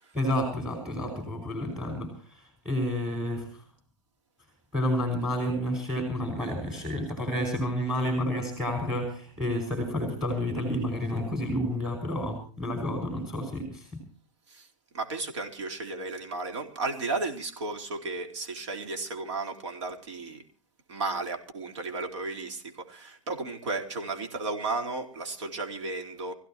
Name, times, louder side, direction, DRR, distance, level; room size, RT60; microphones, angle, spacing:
voice 1, 0.1-3.6 4.7-14.0, left 1 dB, 5° right, 5.7 m, -30 dB
voice 2, 14.9-20.4 20.9-26.3, right 3 dB, 65° right, 4.1 m, -34 dB
26.0 x 16.0 x 2.9 m
hypercardioid pair, 140°, 16 cm